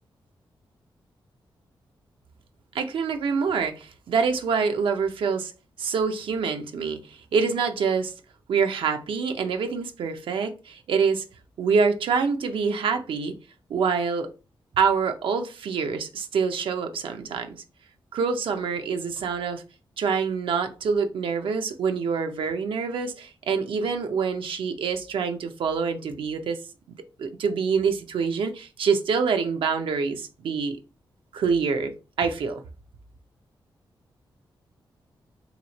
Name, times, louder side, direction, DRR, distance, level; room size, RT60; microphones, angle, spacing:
voice 1, 2.7-5.5 5.8-8.1 8.5-11.2 11.6-13.3 13.7-14.3 14.8-17.6 18.1-19.6 20.0-26.6 27.2-30.8 31.3-32.6, right 5 dB, 80° right, 0.5 m, -26 dB
3.0 x 2.7 x 4.0 m
wide cardioid pair, 145°, 9 cm